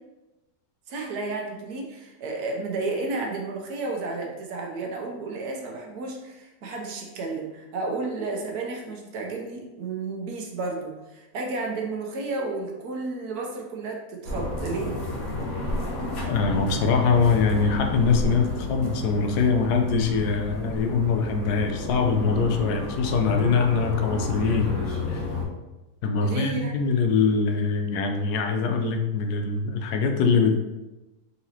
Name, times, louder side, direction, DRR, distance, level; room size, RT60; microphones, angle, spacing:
voice 1, 0.9-15.0 26.2-26.8, right 3 dB, 75° right, 0 dB, 1.3 m, -32 dB
sound 1, 14.3-25.4, left 2 dB, 65° left, 1.4 m, -31 dB
voice 2, 16.2-24.7 25.1-25.2 26.0-30.5, left 5 dB, 80° left, 4 dB, 1.1 m, -23 dB
4.0 x 4.0 x 2.8 m, 1.0 s
omnidirectional pair, 1.7 m